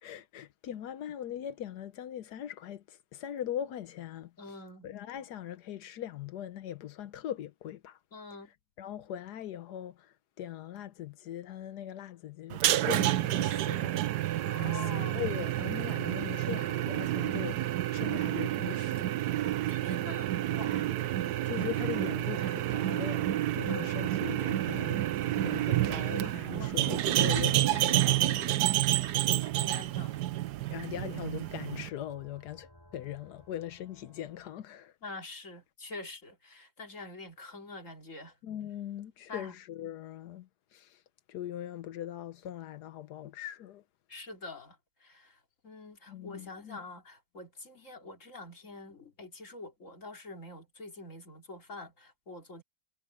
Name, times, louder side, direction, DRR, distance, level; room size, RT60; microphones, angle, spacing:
voice 1, 0.0-4.6 4.8-8.0 8.8-19.1 21.4-29.5 30.7-35.0 38.4-41.0 41.3-43.8 46.1-46.8, left 11 dB, 90° left, 1.4 m, -41 dB
voice 2, 4.4-4.9 8.1-8.5 14.4-15.2 19.7-20.9 23.7-24.1 26.5-26.7 29.4-30.3 35.0-38.4 39.3-39.6 44.1-52.6, left 2 dB, 50° left, 3.5 m, -46 dB
sound 1, 12.5-31.9, right 14 dB, 85° right, 1.3 m, -29 dB
sound 2, 26.6-34.5, equal, 15° left, 4.7 m, -59 dB
omnidirectional pair, 1.7 m